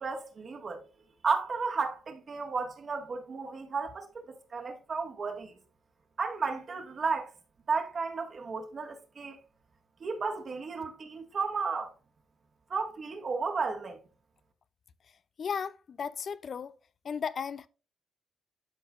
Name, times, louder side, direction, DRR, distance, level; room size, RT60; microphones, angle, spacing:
voice 1, 0.0-0.8 1.2-5.6 6.2-7.3 7.7-9.4 10.0-11.9 12.7-14.0, right 4 dB, 45° right, 1.5 m, -33 dB
voice 2, 15.4-16.7 17.0-17.7, left 6 dB, 50° left, 0.4 m, -35 dB
12.0 x 4.6 x 2.4 m
cardioid pair, 90°, 0 cm